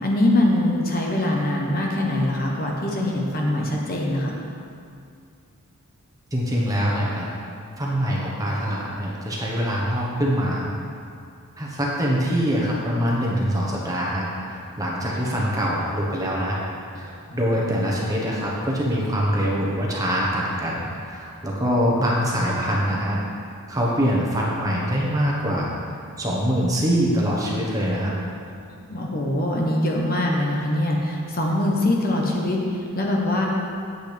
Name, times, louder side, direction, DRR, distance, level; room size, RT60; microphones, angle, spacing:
voice 1, 0.0-4.3 28.9-33.5, left 1 dB, 40° left, -1 dB, 1.0 m, -23 dB
voice 2, 6.3-7.3 7.8-10.7 11.6-16.6 17.0-23.2 23.7-28.1, equal, 15° right, -4 dB, 1.2 m, -24 dB
9.1 x 8.0 x 3.5 m, 2.4 s
head